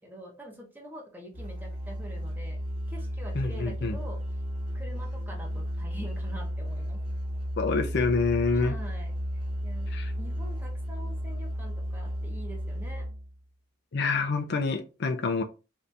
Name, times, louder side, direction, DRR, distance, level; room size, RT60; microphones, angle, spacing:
voice 1, 0.0-2.6 2.9-4.2 4.7-7.0 8.5-9.1 9.6-13.1, equal, 10° right, 0.9 m, -45 dB
Musical instrument, 1.3-13.4, equal, 25° right, 1.2 m, -33 dB
voice 2, 3.3-4.0 7.6-8.8 9.9-10.1 13.9-15.4, left 4 dB, 60° left, 0.5 m, -27 dB
2.8 x 2.5 x 3.3 m
head